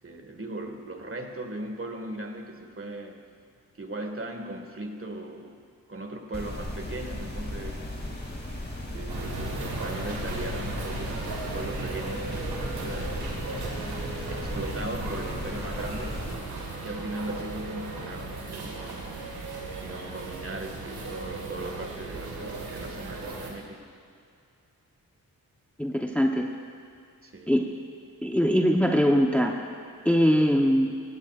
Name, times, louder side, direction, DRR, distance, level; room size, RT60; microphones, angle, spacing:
voice 1, 0.0-3.2 3.8-5.6 5.9-7.8 8.9-13.3 14.1-16.2 16.8-19.0 19.8-23.9 27.2-27.5, right 2 dB, 35° right, 4 dB, 1.8 m, -38 dB
sound 1, 6.3-16.3, left 1 dB, 30° left, 2.8 m, -36 dB
sound 2, 9.1-23.5, right 3 dB, 90° right, 1.8 m, -36 dB
voice 2, 25.8-26.5 27.5-27.6 28.2-29.5 30.0-30.9, equal, 5° left, 2 dB, 0.9 m, -22 dB
16.5 x 16.0 x 2.5 m, 2.4 s
cardioid pair, 40°, 37 cm